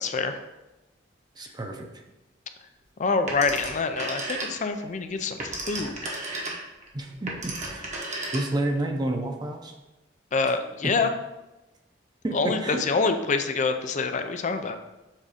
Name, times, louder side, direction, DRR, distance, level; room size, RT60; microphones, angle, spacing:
voice 1, 0.0-0.4 3.0-6.1 10.3-11.1 12.3-14.8, left 4 dB, 40° left, 8 dB, 0.4 m, -26 dB
voice 2, 1.4-1.9 6.9-7.9 8.3-9.7 10.4-10.5 10.8-10.9 12.2-12.8, right 1 dB, 20° right, 3 dB, 0.7 m, -30 dB
Telephone, 3.3-4.8 5.2-8.8, right 2 dB, 40° right, 1.1 m, -34 dB
7.4 x 2.6 x 4.9 m, 1.0 s
head